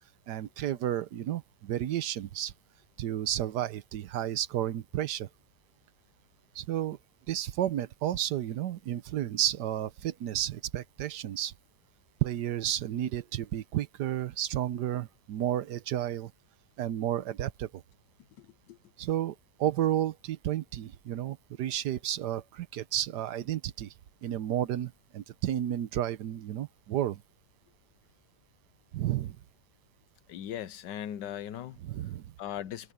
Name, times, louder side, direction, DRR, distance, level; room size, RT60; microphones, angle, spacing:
voice 1, 0.3-2.5 3.0-5.3 6.5-7.0 7.3-11.5 12.2-16.3 16.8-17.8 19.0-23.9 24.2-27.2 28.9-29.4 31.8-32.3, right 11 dB, 75° right, 1.3 m, -32 dB
voice 2, 18.4-18.8 30.3-31.8 32.4-32.9, left 10 dB, 80° left, 1.4 m, -39 dB
omnidirectional pair, 1.9 m